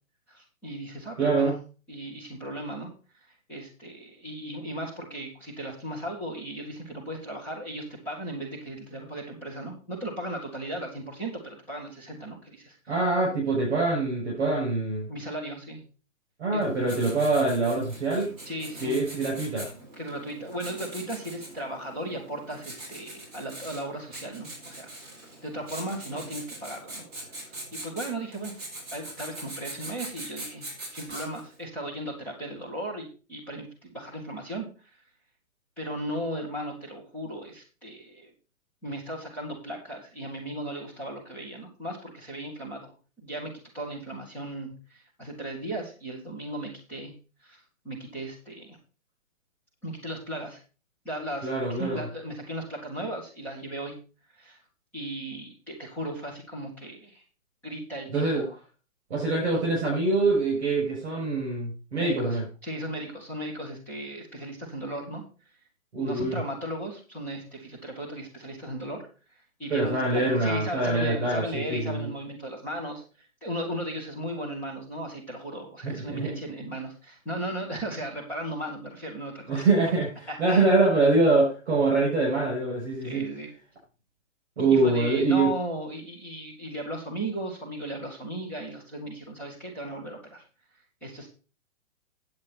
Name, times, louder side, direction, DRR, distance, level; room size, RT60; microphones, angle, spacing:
voice 1, 0.3-1.5 1.9-12.8 15.1-15.8 16.5-16.7 18.4-18.9 20.0-24.9 25.2-27.0 27.4-28.6 28.9-30.6 30.9-35.0 35.8-38.3 38.8-42.9 43.2-47.1 47.4-48.8 49.8-50.6 51.0-53.9 54.3-54.6 54.9-57.2 57.6-58.6 62.0-65.2 65.9-69.1 69.6-79.6 80.3-80.7 83.0-83.5 84.6-90.4 91.0-91.3, right 1 dB, 5° left, -7 dB, 1.3 m, -36 dB
voice 2, 1.2-1.5 12.9-15.1 16.4-18.3 18.8-19.7 51.4-52.0 58.1-58.5 59.1-62.4 65.9-66.4 69.7-72.1 75.8-76.3 79.5-83.3 84.6-85.5, right 3 dB, 55° right, -2 dB, 6.5 m, -24 dB
Writing, 16.6-31.6, right 1 dB, 30° right, 5.0 m, -42 dB
9.6 x 8.1 x 4.3 m, 0.35 s
hypercardioid pair, 180°, 40 cm